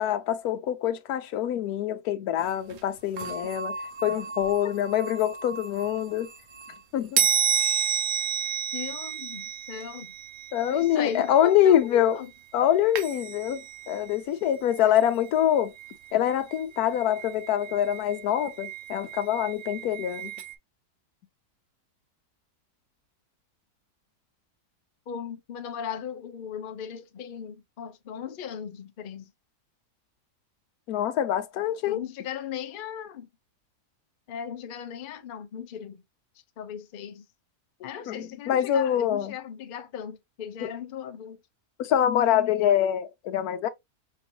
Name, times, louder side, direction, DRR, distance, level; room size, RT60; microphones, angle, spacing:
voice 1, 0.0-3.8 4.0-6.3 6.9-7.3 10.5-12.2 12.5-15.7 16.1-20.3 30.9-32.0 38.1-39.3 40.6-40.7 41.8-43.7, left 10 dB, 75° left, 1.1 m, -25 dB
sound 1, 2.4-2.5 2.7-2.8 3.2-6.8 7.2-12.4 13.0-14.2 14.5-20.5, right 8 dB, 60° right, 0.8 m, -32 dB
voice 2, 8.7-10.1 10.7-12.3 25.1-29.3 31.9-33.3 34.3-36.0 36.6-37.3 37.8-41.4, left 8 dB, 60° left, 0.5 m, -37 dB
5.2 x 2.7 x 2.7 m
omnidirectional pair, 1.6 m